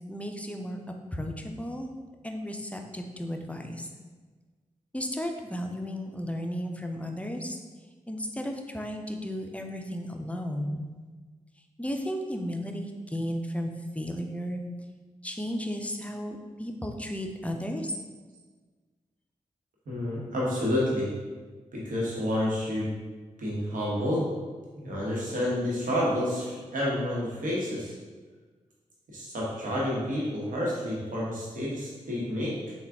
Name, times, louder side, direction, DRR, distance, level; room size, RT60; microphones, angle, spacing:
voice 1, 0.1-0.8 1.1-1.9 2.2-3.9 4.9-7.6 8.1-10.8 11.8-14.6 15.2-17.9, equal, 10° left, 3 dB, 0.5 m, -34 dB
voice 2, 19.9-21.1 21.7-23.0 23.4-24.3 24.8-28.0 29.1-32.7, left 1 dB, 75° right, -5 dB, 1.1 m, -29 dB
3.5 x 2.3 x 3.5 m, 1.4 s
cardioid pair, 40°, 14 cm